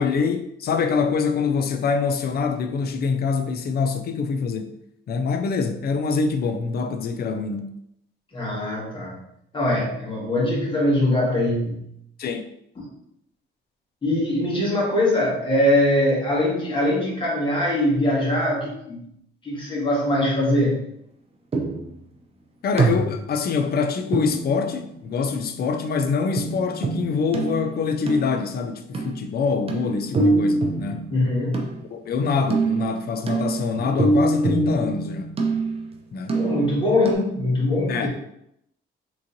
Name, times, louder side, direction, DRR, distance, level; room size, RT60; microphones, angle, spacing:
voice 1, 0.0-4.7 5.1-7.8 12.2-12.5 22.6-31.1 31.9-35.3 36.1-36.4 37.9-38.1, left 5 dB, 50° left, 0.4 m, -25 dB
voice 2, 8.3-9.2 9.5-11.9 12.8-12.9 14.0-19.0 19.4-20.8 31.1-31.7 36.3-38.1, left 1 dB, 25° left, 1.5 m, -22 dB
sound 1, 21.5-22.0 22.8-23.4 24.1-25.1 26.3-28.4 28.9-29.3 29.7-31.9 32.5-35.9 36.3-36.8 37.0-37.1, right 3 dB, 30° right, 0.6 m, -25 dB
3.5 x 3.0 x 2.6 m
cardioid pair, 90°, 20 cm